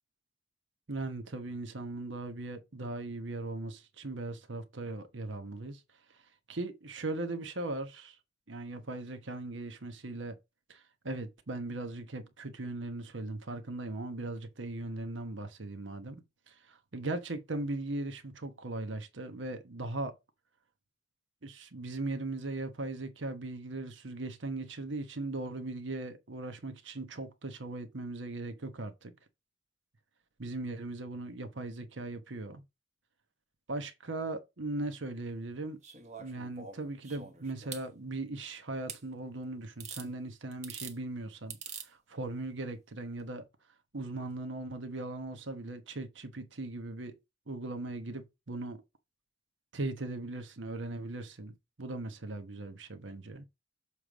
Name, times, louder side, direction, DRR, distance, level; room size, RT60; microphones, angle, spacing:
voice 1, 0.9-5.8 6.5-8.2 8.5-10.4 10.7-20.1 21.4-29.1 30.4-32.6 33.7-35.8 36.2-41.6 41.8-43.4 43.9-47.1 47.5-48.8 49.7-53.4, right 2 dB, 70° right, 1.2 m, -39 dB
sound 1, 35.8-37.9 38.9-39.0 39.8-40.1 40.5-41.0 41.5-41.9 43.1-43.2, right 6 dB, 40° right, 1.2 m, -44 dB
7.2 x 3.2 x 5.0 m
head